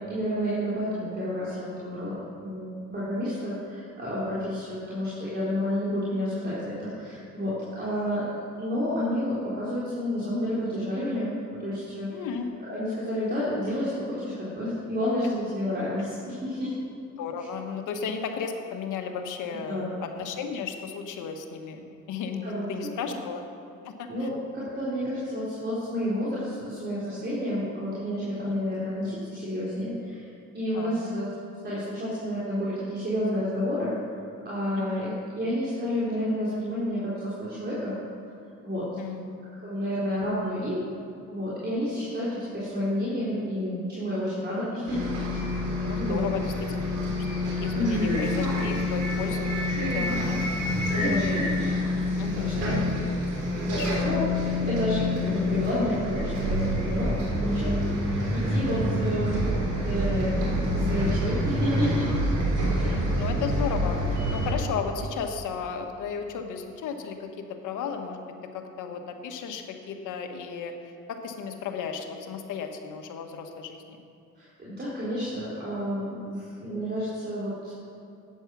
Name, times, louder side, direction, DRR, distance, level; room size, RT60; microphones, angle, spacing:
voice 1, 0.0-7.5 7.8-8.3 8.6-12.2 12.6-16.7 17.4-17.5 19.7-19.9 22.4-22.7 24.1-30.2 30.5-31.3 31.6-33.9 34.5-38.0 38.6-38.8 39.5-40.8 41.3-45.0 45.3-45.4 46.0-46.2 47.7-48.0 50.9-51.9 52.3-52.8 53.5-57.1 57.4-57.7 58.1-59.4 59.8-60.4 60.7-62.1 62.7-62.9 74.4-77.7, equal, 35° right, -9 dB, 3.6 m, -30 dB
voice 2, 12.1-12.5 17.2-23.4 23.8-24.3 30.7-31.2 34.8-35.1 39.0-39.2 45.8-46.8 47.5-49.6 49.9-50.5 52.2-52.5 53.7-54.1 62.8-68.2 68.5-70.7 71.1-73.8, left 6 dB, 85° left, 5 dB, 1.4 m, -34 dB
Bus, 44.9-64.5, left 1 dB, 80° right, 3.7 m, -27 dB
13.5 x 9.6 x 6.2 m, 2.6 s
cardioid pair, 90°, 30 cm